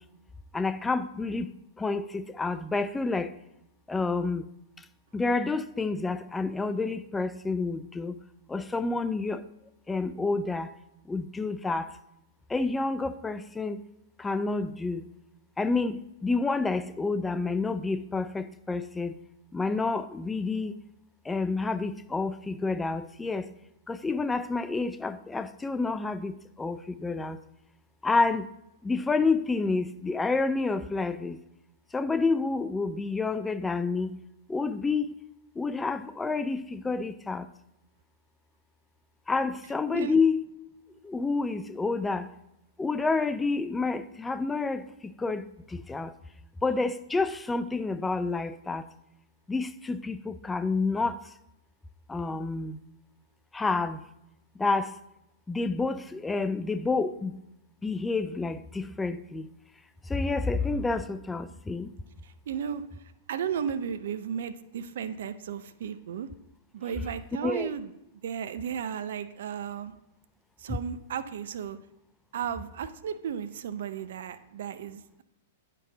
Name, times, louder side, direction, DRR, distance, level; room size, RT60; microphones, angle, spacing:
voice 1, 0.5-1.5 1.8-3.3 3.9-4.4 5.1-8.1 8.5-9.4 9.9-10.7 11.1-11.8 12.5-13.8 14.2-15.0 15.6-19.1 19.5-20.7 21.3-23.4 23.9-27.4 28.0-28.5 28.8-31.4 31.9-34.1 34.5-35.1 35.6-37.4 39.3-40.4 41.1-42.3 42.8-44.8 45.2-45.4 45.9-46.1 46.6-48.8 49.5-51.1 52.1-52.8 53.5-54.0 54.6-54.9 55.5-57.3 57.8-59.5 60.1-61.9 67.4-67.7, left 3 dB, 10° left, 0.3 m, -29 dB
voice 2, 62.2-66.3 66.7-67.9 68.2-69.9 70.6-71.8 72.3-75.2, right 8 dB, 65° right, 0.4 m, -34 dB
9.1 x 4.6 x 3.9 m
hypercardioid pair, 110°, 0 cm